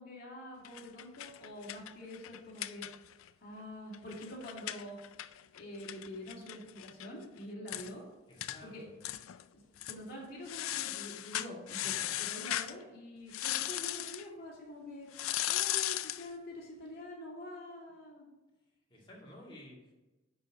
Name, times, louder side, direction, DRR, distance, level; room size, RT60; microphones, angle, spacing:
voice 1, 0.0-2.9 3.4-5.0 5.5-8.0 8.6-8.8 9.5-15.1 15.5-18.3, left 1 dB, 50° left, -4 dB, 2.5 m, -46 dB
sound 1, 0.6-3.3 3.6-3.7 3.9-7.1 7.4-7.5 7.7-7.9 8.4-8.6 9.0-9.4 9.8-10.0 10.5-12.7 13.3-14.2 15.1-16.3, left 14 dB, 80° left, 0.4 m, -37 dB
voice 2, 8.3-8.9 12.1-12.2 18.9-19.9, left 1 dB, 25° left, -4 dB, 2.0 m, -53 dB
10.5 x 4.1 x 4.9 m, 1.1 s
head